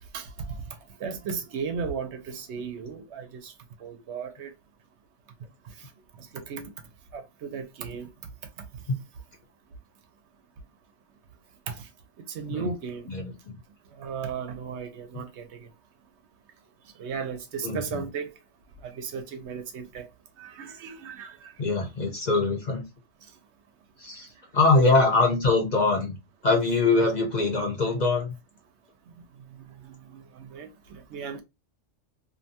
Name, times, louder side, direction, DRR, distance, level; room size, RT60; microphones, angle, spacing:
voice 1, 0.1-3.5 3.8-4.5 5.6-5.9 6.2-6.7 7.1-8.1 11.7-11.9 12.3-13.1 13.9-15.7 17.0-18.3 18.8-20.1 20.4-21.5 24.9-25.1 29.1-29.2 29.5-31.4, right 6 dB, 70° right, 0.9 m, -36 dB
voice 2, 13.1-13.6 15.1-15.2 17.6-18.0 21.6-22.8 24.0-26.2 26.4-28.3, left 3 dB, 45° left, 0.7 m, -23 dB
2.6 x 2.2 x 2.6 m
omnidirectional pair, 1.2 m